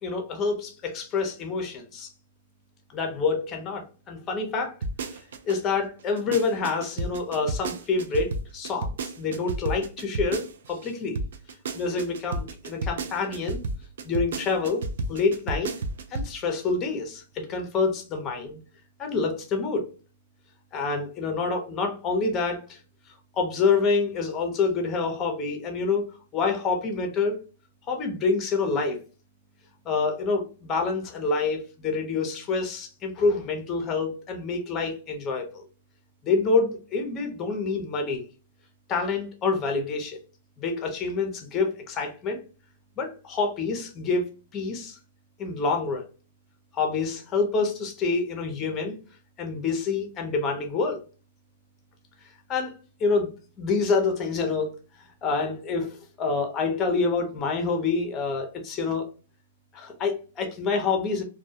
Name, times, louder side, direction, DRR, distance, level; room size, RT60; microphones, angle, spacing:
voice 1, 0.0-2.1 2.9-4.7 5.1-5.2 5.4-11.2 11.7-13.6 14.0-14.8 15.1-15.7 16.1-18.6 19.0-19.9 20.7-22.8 23.3-27.4 27.9-29.0 29.9-35.7 36.2-38.3 38.9-40.2 40.6-42.4 43.0-45.0 45.4-46.1 46.7-49.0 49.4-51.0 52.5-52.7 53.0-54.7 55.2-59.1 59.7-61.2, left 4 dB, 25° left, 4 dB, 0.6 m, -27 dB
sound 1, 4.8-5.6 6.0-10.9 11.1-16.3 16.6-16.7, right 2 dB, 75° right, 0.4 m, -31 dB
2.1 x 2.1 x 2.7 m, 0.36 s
hypercardioid pair, 150°, 0 cm